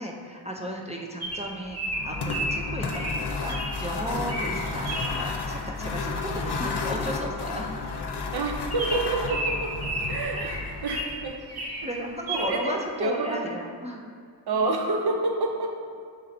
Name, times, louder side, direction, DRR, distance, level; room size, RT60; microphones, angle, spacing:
voice 1, 0.0-7.7 10.3-10.6 10.9-11.1 11.8-14.0, equal, 15° right, -1 dB, 0.4 m, -35 dB
Bird vocalization bird call bird song, 1.2-3.7 4.2-4.5 4.8-5.1 6.6-6.8 7.1-7.2 7.5-7.7 8.1-8.2 8.7-11.1 11.5-11.9 12.3-12.5, right 1 dB, 35° right, 1.4 m, -32 dB
sound 1, 1.8-11.2, left 4 dB, 60° left, 0.7 m, -32 dB
voice 2, 8.3-9.7 10.1-11.7 12.3-13.4 14.5-15.8, right 3 dB, 60° right, 1 dB, 0.7 m, -28 dB
6.3 x 3.9 x 4.2 m, 2.2 s
wide cardioid pair, 135°, 44 cm